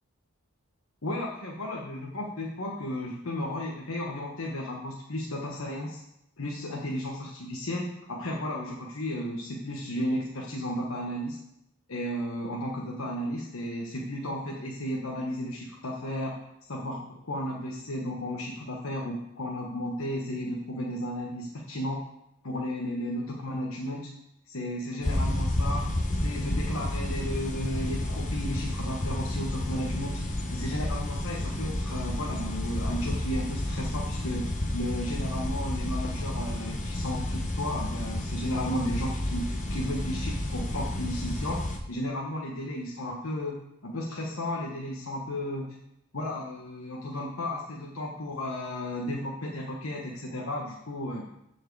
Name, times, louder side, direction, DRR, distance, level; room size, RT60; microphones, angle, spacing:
voice 1, 1.0-6.0 6.4-11.4 11.9-22.0 22.4-24.1 24.5-30.2 30.5-41.6 41.9-45.8 46.1-51.3, left 1 dB, 70° left, -2 dB, 1.1 m, -34 dB
sound 1, 25.0-41.8, left 1 dB, 35° left, 1.0 m, -31 dB
13.5 x 4.7 x 4.7 m, 0.82 s
head